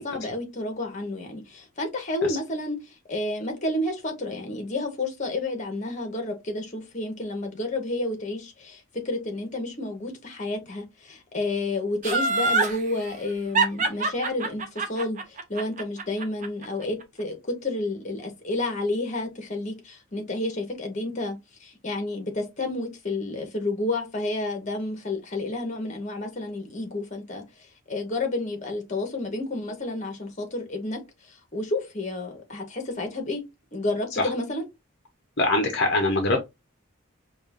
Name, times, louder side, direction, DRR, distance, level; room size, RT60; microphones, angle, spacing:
voice 1, 0.0-2.8 3.1-27.4 27.9-31.0 31.5-33.4 33.7-34.6, left 2 dB, 35° left, 1.1 m, -30 dB
Laughter, 12.0-12.8 13.6-16.7 17.0-17.1, right 3 dB, 35° right, 0.7 m, -24 dB
voice 2, 35.4-36.4, left 2 dB, 55° left, 0.7 m, -23 dB
5.2 x 2.4 x 2.5 m
head